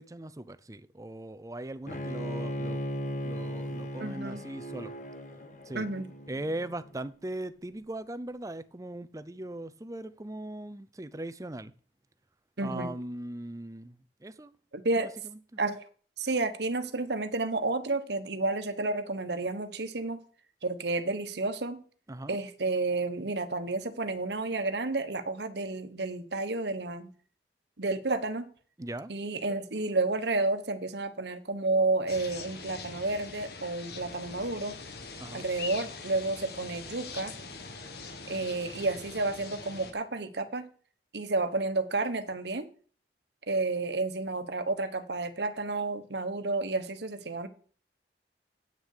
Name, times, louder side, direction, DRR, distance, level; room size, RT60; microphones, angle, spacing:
voice 1, 0.0-2.8 3.2-4.9 5.7-5.9 6.3-11.7 12.6-14.5 15.0-15.6 22.1-22.4 28.8-29.1 35.2-35.5, right 1 dB, 20° right, 0.5 m, -39 dB
Bowed string instrument, 1.9-6.9, equal, 45° left, 1.1 m, -37 dB
voice 2, 4.0-4.4 5.7-6.1 12.6-12.9 14.7-15.1 15.6-15.8 16.2-20.2 20.6-21.8 22.3-27.1 27.8-28.5 29.1-34.8 35.3-37.3 38.3-40.7 41.1-42.7 43.5-47.5, right 2 dB, 70° right, 1.2 m, -31 dB
sound 1, 32.1-39.9, left 4 dB, 60° left, 1.5 m, -43 dB
9.1 x 6.7 x 6.5 m
head